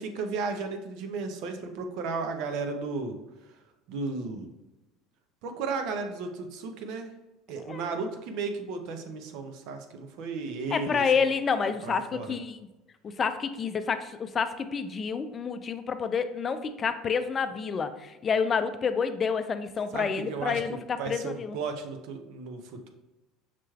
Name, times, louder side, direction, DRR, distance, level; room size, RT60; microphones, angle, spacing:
voice 1, 0.0-3.2 3.9-4.5 5.4-7.1 7.5-11.0 11.8-12.4 19.9-22.9, right 4 dB, 65° right, 6 dB, 0.6 m, -34 dB
voice 2, 10.7-12.6 13.0-21.6, left 6 dB, 35° left, 10 dB, 0.4 m, -29 dB
5.8 x 3.1 x 2.3 m, 1.0 s
supercardioid pair, 90°, 0 cm